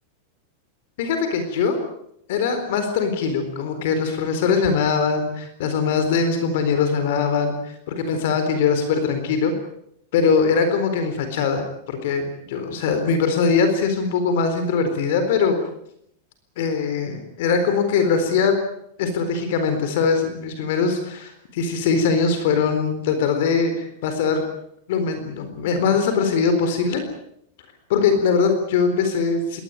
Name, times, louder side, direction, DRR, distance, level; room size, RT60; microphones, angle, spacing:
voice 1, 1.0-1.9 2.3-9.5 10.1-15.6 16.6-18.6 19.0-24.4 24.9-27.0 27.9-29.6, left 5 dB, 55° left, 7 dB, 4.1 m, -21 dB
22.5 x 19.0 x 9.1 m, 0.73 s
supercardioid pair, 175°, 0 cm